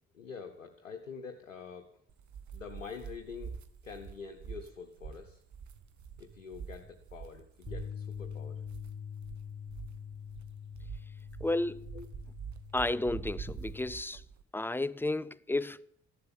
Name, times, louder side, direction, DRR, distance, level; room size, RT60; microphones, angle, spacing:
voice 1, 0.1-1.9 2.5-3.6 3.8-5.4 6.2-8.6 11.9-12.1, left 5 dB, 90° left, 1.0 m, -46 dB
sound 1, 2.1-14.4, right 7 dB, 50° right, 1.6 m, -46 dB
Bass guitar, 7.7-13.9, left 8 dB, 35° left, 0.8 m, -44 dB
voice 2, 11.4-11.9 12.7-14.2 14.5-15.9, left 2 dB, 5° left, 0.6 m, -32 dB
14.0 x 11.5 x 8.8 m
figure-of-eight pair, 40°, 38 cm